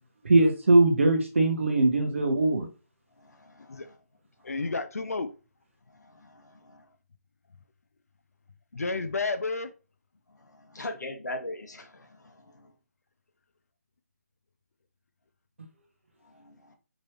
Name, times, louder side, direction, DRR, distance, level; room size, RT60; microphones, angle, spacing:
voice 1, 0.3-2.7, right 2 dB, 45° right, 3 dB, 1.2 m, -21 dB
voice 2, 3.2-4.0 4.4-4.7 5.9-6.9 10.3-12.7 16.2-16.8, left 1 dB, 90° left, 4 dB, 1.4 m, -42 dB
voice 3, 4.4-5.3 8.7-9.7, left 3 dB, 60° left, 10 dB, 0.6 m, -31 dB
5.0 x 3.3 x 3.0 m, 0.34 s
hypercardioid pair, 180°, 9 cm